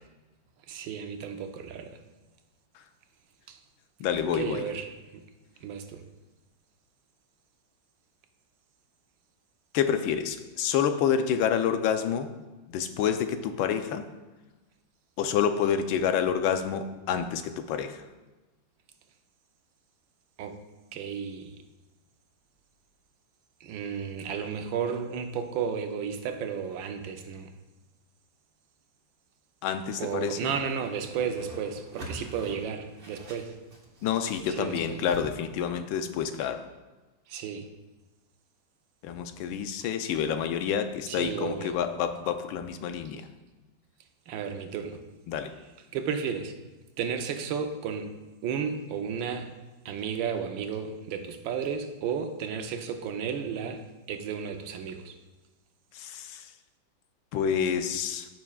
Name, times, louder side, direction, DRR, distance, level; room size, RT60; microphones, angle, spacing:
voice 1, 0.7-2.0 3.5-3.6 4.3-5.2 5.6-6.0 20.4-20.6 20.9-21.5 23.6-27.5 30.0-33.5 34.6-35.0 37.3-37.7 41.1-41.7 44.3-45.0 45.9-46.5 47.0-48.2 48.4-49.5 49.8-55.1, right 7 dB, 80° right, 1.4 m, -33 dB
voice 2, 4.0-4.6 9.7-12.3 12.7-14.0 15.2-18.0 29.6-30.5 34.0-36.6 39.0-43.3 45.3-45.5 55.9-56.5 57.3-58.3, left 8 dB, 85° left, 1.4 m, -28 dB
Whoosh swoosh swish, 30.2-35.2, right 1 dB, 30° right, 1.3 m, -45 dB
14.5 x 6.0 x 2.3 m
omnidirectional pair, 2.1 m